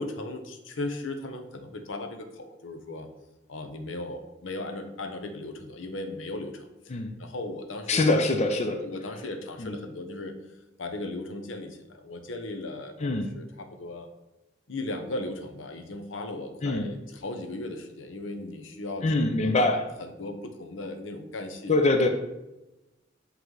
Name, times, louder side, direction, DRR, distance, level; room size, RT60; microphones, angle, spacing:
voice 1, 0.0-3.1 3.5-6.9 7.2-8.1 8.8-10.3 10.8-14.1 14.7-19.6 20.0-21.8, left 2 dB, 85° left, 6 dB, 0.8 m, -37 dB
voice 2, 7.9-8.8 9.6-9.7 13.0-13.3 16.6-16.9 19.0-19.9 21.7-22.1, left 2 dB, 35° left, 5 dB, 0.5 m, -24 dB
7.9 x 3.3 x 3.8 m, 0.98 s
head